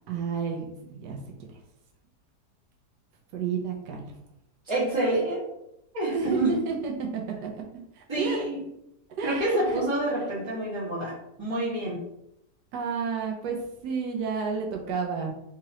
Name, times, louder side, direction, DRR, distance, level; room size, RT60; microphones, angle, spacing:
voice 1, 0.1-1.2 1.5-1.6 3.3-4.1 6.1-7.6 7.9-8.4 9.2-9.8 12.7-13.6 13.8-15.3, right 5 dB, 85° right, 0 dB, 1.3 m, -31 dB
voice 2, 4.7-5.5 5.9-6.5 8.1-8.7 9.2-11.1 11.4-12.0, right 2 dB, 20° right, -8 dB, 1.4 m, -27 dB
3.7 x 3.0 x 2.8 m, 0.81 s
omnidirectional pair, 1.8 m